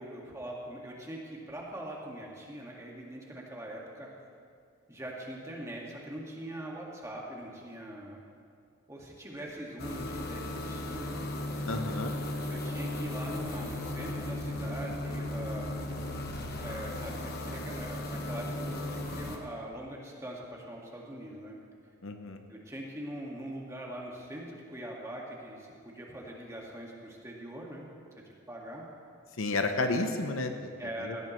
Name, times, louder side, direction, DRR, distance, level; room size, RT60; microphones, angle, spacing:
voice 1, 0.0-4.1 4.9-8.2 8.9-11.2 12.5-15.7 16.6-21.6 22.5-27.9 28.5-28.9 30.8-31.3, right 1 dB, 15° right, -3 dB, 1.9 m, -42 dB
sound 1, 9.8-19.4, left 1 dB, 45° left, 1.3 m, -36 dB
voice 2, 11.7-12.1 22.0-22.4 29.4-30.7 31.0-31.2, left 2 dB, 65° left, 6 dB, 0.9 m, -31 dB
18.5 x 15.5 x 3.2 m, 2.2 s
head